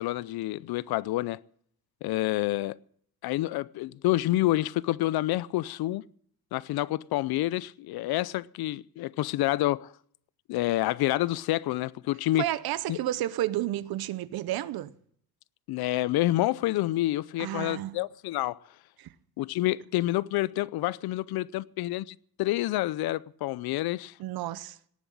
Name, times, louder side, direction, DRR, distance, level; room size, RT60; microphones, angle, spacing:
voice 1, 0.0-1.4 2.0-2.8 3.2-6.0 6.5-9.9 10.5-12.4 12.9-13.0 15.7-18.6 19.4-24.1, left 16 dB, 80° left, 0.5 m, -28 dB
voice 2, 12.4-14.9 17.4-18.0 19.0-19.1 24.2-24.8, right 14 dB, 75° right, 0.7 m, -31 dB
18.5 x 7.3 x 9.9 m
cardioid pair, 125°, 36 cm